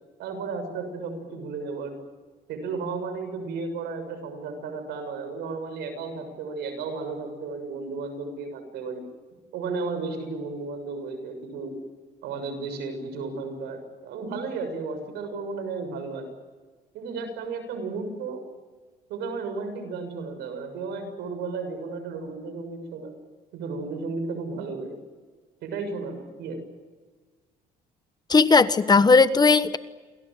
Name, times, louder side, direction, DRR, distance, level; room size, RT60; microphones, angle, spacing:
voice 1, 0.2-2.0 2.5-9.0 9.5-11.8 12.2-16.3 16.9-18.4 19.1-23.1 23.5-25.0 25.6-26.6, right 4 dB, 85° right, 8 dB, 6.9 m, -33 dB
voice 2, 28.3-29.8, left 4 dB, 25° left, 13 dB, 1.1 m, -17 dB
28.5 x 23.5 x 7.7 m, 1.4 s
cardioid pair, 110°, 17 cm